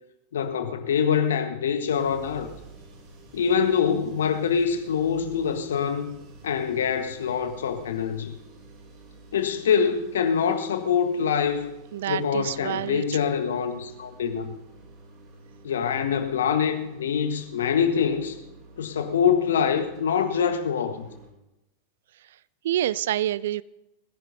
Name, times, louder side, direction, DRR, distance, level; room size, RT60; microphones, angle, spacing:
voice 1, 0.3-2.5 3.3-6.2 6.4-8.4 9.3-11.7 12.1-14.5 15.6-18.4 18.8-21.1, left 7 dB, 65° left, 8 dB, 1.6 m, -25 dB
sound 1, 1.9-21.3, right 3 dB, 40° right, 2.6 m, -49 dB
voice 2, 11.9-13.0 22.6-23.6, right 12 dB, 60° right, 21 dB, 0.4 m, -27 dB
20.0 x 10.0 x 5.3 m, 0.94 s
figure-of-eight pair, 90°, 0 cm